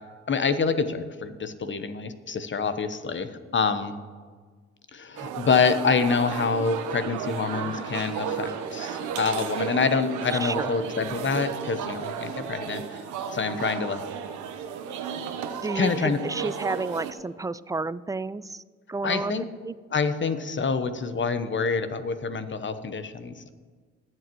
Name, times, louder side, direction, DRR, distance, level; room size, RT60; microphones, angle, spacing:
voice 1, 0.3-4.0 4.9-13.0 13.3-14.0 15.7-16.2 19.0-19.4 19.9-23.5, left 5 dB, 40° left, 11 dB, 1.1 m, -26 dB
sound 1, 5.2-17.1, right 7 dB, 75° right, 1.0 m, -33 dB
voice 2, 10.4-10.7 15.6-18.6 18.9-19.8, right 3 dB, 10° right, 17 dB, 0.4 m, -31 dB
21.0 x 7.7 x 3.1 m, 1.5 s
hypercardioid pair, 50°, 30 cm